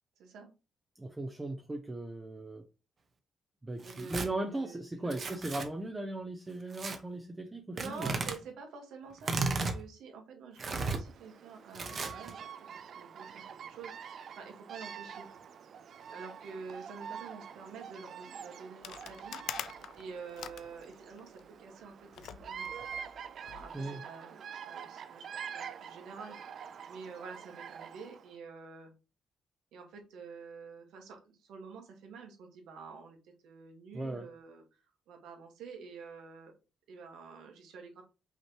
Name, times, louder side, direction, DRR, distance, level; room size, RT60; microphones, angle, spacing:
voice 1, 0.2-0.5 3.8-5.5 7.7-12.4 13.0-15.3 16.1-19.4 19.9-22.7 23.4-28.9 29.7-34.6 35.1-36.5 36.9-38.0, right 5 dB, 85° right, 1.4 m, -48 dB
voice 2, 1.0-2.6 3.6-8.1 23.7-24.0 33.9-34.3, right 2 dB, 15° right, 0.6 m, -38 dB
Tearing, 3.8-4.3 5.1-5.7 6.7-7.0 7.8-8.4 9.2-9.8 10.6-11.0 11.7-12.3, right 3 dB, 45° right, 0.9 m, -34 dB
Bird vocalization bird call bird song, 11.0-28.3, right 7 dB, 60° right, 0.4 m, -46 dB
sound 1, 18.8-21.5 22.1-23.8, left 9 dB, 75° left, 0.4 m, -45 dB
5.6 x 3.2 x 2.9 m
cardioid pair, 95°, 0 cm